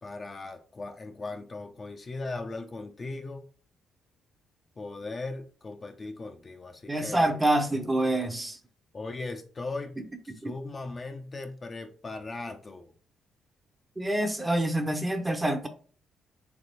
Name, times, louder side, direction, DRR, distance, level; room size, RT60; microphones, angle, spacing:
voice 1, 0.0-3.4 4.8-7.3 8.9-10.0 10.4-12.9, left 3 dB, 35° left, 0.6 m, -38 dB
voice 2, 6.9-8.6 10.4-10.5 14.0-15.7, right 1 dB, 15° right, 0.7 m, -26 dB
3.4 x 3.4 x 4.2 m
cardioid pair, 90°, 0 cm